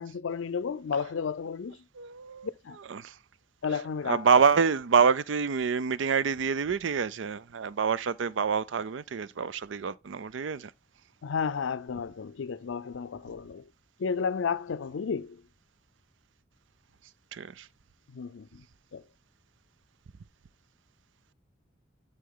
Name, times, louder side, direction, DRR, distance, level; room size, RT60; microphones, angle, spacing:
voice 1, 0.0-1.8 2.7-2.8 3.6-4.2 11.2-13.6 14.0-15.4 18.1-18.6 18.9-19.0, left 6 dB, 80° left, 0.4 m, -32 dB
voice 2, 1.9-3.2 3.7-10.7 17.3-17.7, right 6 dB, 75° right, 0.5 m, -27 dB
11.5 x 4.3 x 3.8 m
head